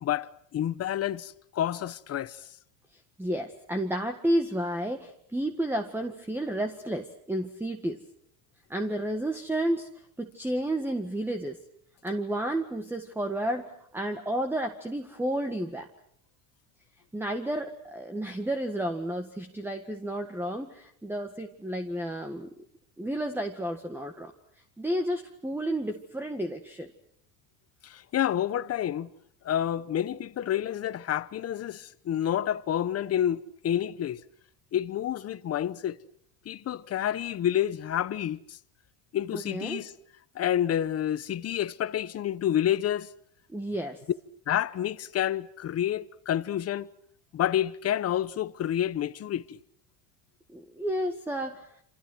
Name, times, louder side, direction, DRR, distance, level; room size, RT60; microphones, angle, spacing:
voice 1, 0.0-2.4 27.8-29.1 29.4-34.2 34.7-36.0 36.5-38.6 39.1-39.9 40.3-43.1 44.5-46.9 47.3-49.6, left 11 dB, 35° left, 1.0 m, -29 dB
voice 2, 3.2-8.0 8.7-9.9 10.2-11.6 12.0-15.9 17.1-22.5 23.0-24.3 24.8-26.9 39.3-39.8 43.5-44.0 50.5-51.7, right 1 dB, 5° right, 1.7 m, -31 dB
28.5 x 27.0 x 6.3 m
supercardioid pair, 120°, 44 cm